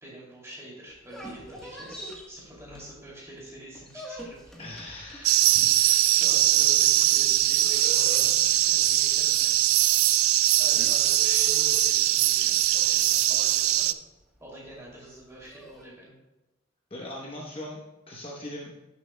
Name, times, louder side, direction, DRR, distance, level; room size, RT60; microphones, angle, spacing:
voice 1, 0.0-4.4 5.2-9.6 10.6-13.9 14.4-16.1, equal, 15° right, -5 dB, 2.6 m, -46 dB
sound 1, 0.9-3.2 3.5-15.9, right 1 dB, 5° left, 1.2 m, -45 dB
voice 2, 4.6-5.5 10.7-10.9 16.9-17.8 18.1-18.7, left 1 dB, 25° left, -3 dB, 0.9 m, -39 dB
sound 2, 5.2-13.9, right 14 dB, 80° right, 0.3 m, -21 dB
12.0 x 7.0 x 2.2 m, 1.0 s
head